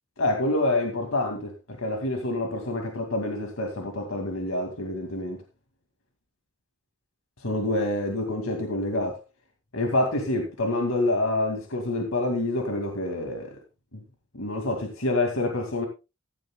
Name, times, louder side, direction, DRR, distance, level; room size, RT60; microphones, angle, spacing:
voice 1, 0.2-5.4 7.4-9.2 9.7-13.6 13.9-14.0 14.3-15.9, left 2 dB, 80° left, 2.2 m, -27 dB
16.0 x 12.5 x 2.3 m
head